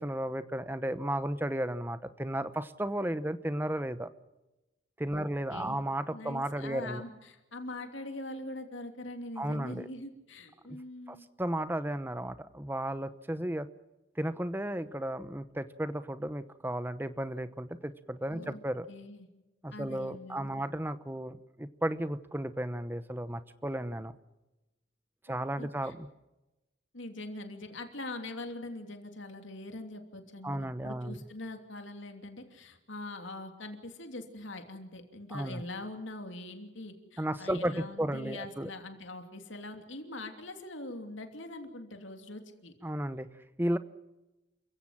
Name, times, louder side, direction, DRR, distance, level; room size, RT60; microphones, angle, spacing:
voice 1, 0.0-4.1 5.0-7.0 9.4-9.9 11.1-13.7 14.2-18.9 19.6-24.1 25.2-26.1 30.4-31.2 35.3-35.6 37.2-38.7 42.8-43.3 43.6-43.8, right 1 dB, 10° right, 12 dB, 0.9 m, -34 dB
voice 2, 5.1-11.3 18.3-18.6 18.9-19.3 19.7-20.6 25.3-25.9 26.9-42.7, left 2 dB, 75° left, 5 dB, 2.9 m, -43 dB
28.5 x 16.0 x 7.5 m, 1.0 s
head